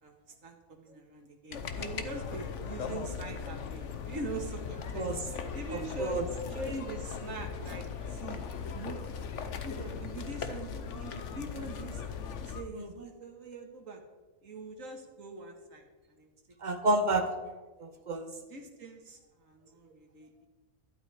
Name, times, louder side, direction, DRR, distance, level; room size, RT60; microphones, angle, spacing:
voice 1, 0.0-5.1 5.5-6.2 6.5-8.4 8.7-9.2 9.6-12.0 12.4-14.0 14.4-16.3 17.2-17.3 18.5-20.5, right 2 dB, 65° right, 3 dB, 2.1 m, -43 dB
sound 1, 1.5-12.6, left 6 dB, 60° left, 1.2 m, -39 dB
voice 2, 5.7-6.3 12.7-12.9 16.6-17.3 17.8-18.4, right 2 dB, 35° right, 6 dB, 1.3 m, -30 dB
12.0 x 12.0 x 4.9 m, 1.2 s
omnidirectional pair, 1.5 m